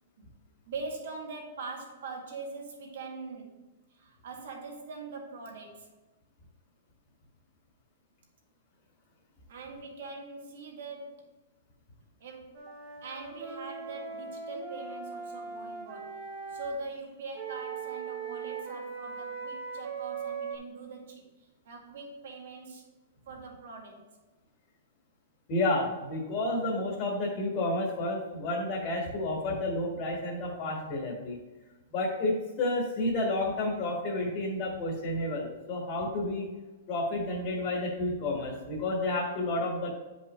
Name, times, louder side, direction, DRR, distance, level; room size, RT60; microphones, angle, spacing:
voice 1, 0.7-3.5 3.9-5.9 9.5-11.2 12.2-12.7 13.0-16.2 16.5-21.2 21.7-22.8 23.3-24.1, right 3 dB, 55° right, 1 dB, 1.9 m, -42 dB
Wind instrument woodwind instrument, 12.5-16.7 17.3-20.6, right 5 dB, 25° right, 1.0 m, -39 dB
voice 2, 25.5-31.4 31.9-36.5 36.9-39.9, left 2 dB, 25° left, -3 dB, 1.6 m, -30 dB
9.9 x 5.3 x 3.1 m, 1.2 s
supercardioid pair, 180°, 0 cm